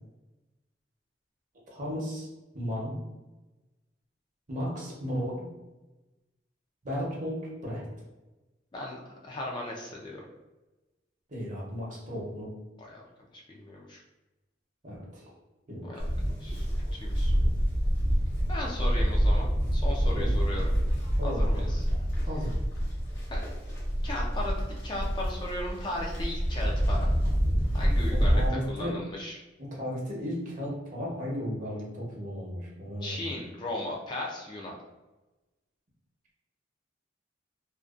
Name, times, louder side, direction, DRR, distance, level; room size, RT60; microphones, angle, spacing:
voice 1, 1.7-2.3 2.5-3.0 4.5-5.5 6.8-7.9 11.3-12.5 14.8-15.3 15.7-16.0 20.1-20.4 21.2-21.7 22.3-22.5 28.1-29.0 29.6-33.4, equal, 45° right, -4 dB, 0.8 m, -35 dB
voice 2, 9.2-10.2 12.8-13.0 13.5-14.0 15.9-16.1 16.4-16.7 16.9-17.3 18.5-20.6 21.2-21.8 23.3-23.4 24.0-27.1 27.7-28.4 28.7-29.4 33.0-34.8, left 1 dB, 25° left, -2 dB, 0.3 m, -36 dB
Livestock farm animals working animals, 16.0-28.5, equal, 70° left, 0.9 m, -27 dB
2.5 x 2.2 x 2.4 m, 1.1 s
head